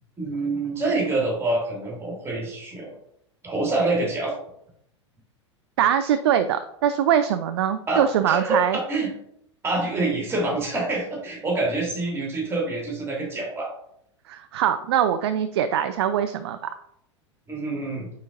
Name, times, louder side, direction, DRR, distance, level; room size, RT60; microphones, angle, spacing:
voice 1, 0.2-2.9 3.4-4.3 7.9-9.1 9.6-13.7 17.5-18.1, right 2 dB, 15° right, -2 dB, 2.2 m, -26 dB
voice 2, 5.8-8.8 14.3-16.7, right 9 dB, 55° right, 10 dB, 0.4 m, -22 dB
9.2 x 4.2 x 2.6 m, 0.75 s
figure-of-eight pair, 90°, 16 cm